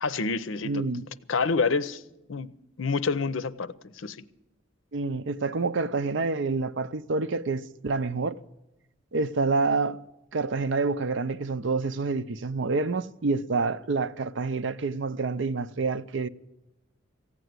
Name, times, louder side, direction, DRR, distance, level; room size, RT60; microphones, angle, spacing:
voice 1, 0.0-0.8 1.3-2.0 2.3-2.5 2.8-4.2, left 4 dB, 75° left, 0.6 m, -28 dB
voice 2, 0.6-1.1 4.9-8.4 9.1-10.0 10.3-16.3, right 3 dB, 65° right, 0.6 m, -28 dB
15.5 x 9.1 x 9.4 m
head